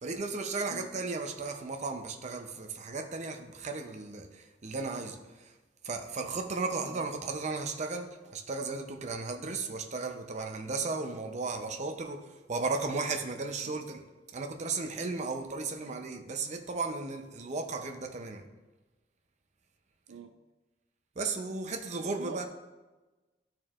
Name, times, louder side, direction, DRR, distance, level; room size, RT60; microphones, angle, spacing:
voice 1, 0.0-5.5 5.8-14.0 14.3-18.4 21.2-22.5, right 3 dB, 40° right, 5 dB, 0.6 m, -35 dB
voice 2, 22.2-22.5, right 4 dB, 90° right, 8 dB, 0.4 m, -45 dB
12.5 x 4.5 x 2.4 m, 1.2 s
head